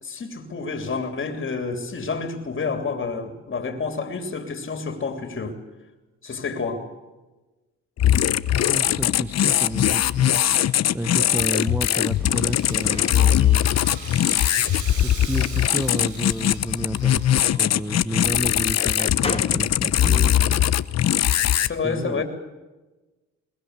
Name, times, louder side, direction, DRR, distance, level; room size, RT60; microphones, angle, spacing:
voice 1, 0.0-5.6 6.2-6.8 21.6-22.2, left 4 dB, 40° left, 6 dB, 3.3 m, -29 dB
sound 1, 8.0-21.7, left 11 dB, 60° left, 0.9 m, -21 dB
voice 2, 8.7-13.8 15.0-20.7 21.6-22.2, right 1 dB, 5° right, 11 dB, 1.0 m, -31 dB
Rattle (instrument), 11.3-17.4, right 4 dB, 75° right, 6.4 m, -41 dB
sound 2, 12.2-14.2 14.6-15.3 16.3-17.8 18.4-19.7, left 3 dB, 20° left, 2.6 m, -38 dB
22.0 x 20.0 x 8.2 m, 1.1 s
cardioid pair, 90°, 30 cm